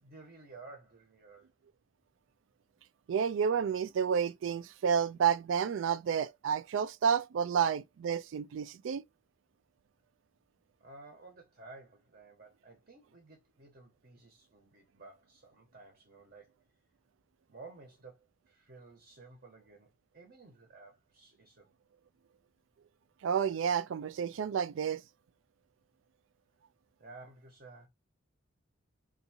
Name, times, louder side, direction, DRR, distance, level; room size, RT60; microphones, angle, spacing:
voice 1, 0.0-1.5 10.8-16.6 17.5-21.7 27.0-27.9, right 3 dB, 50° right, 1.0 m, -54 dB
voice 2, 3.1-9.0 23.2-25.0, right 7 dB, 70° right, 0.3 m, -30 dB
3.5 x 2.7 x 2.7 m
head